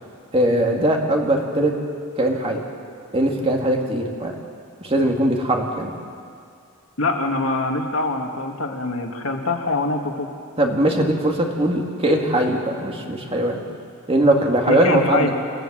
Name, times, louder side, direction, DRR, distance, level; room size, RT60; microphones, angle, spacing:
voice 1, 0.3-1.7 2.2-2.6 3.1-4.3 4.8-5.9 10.6-13.6 14.1-15.4, right 1 dB, 25° right, 1 dB, 2.3 m, -20 dB
voice 2, 7.0-10.3 14.7-15.3, left 2 dB, 70° left, 2 dB, 2.1 m, -24 dB
28.0 x 15.5 x 7.6 m, 2.3 s
head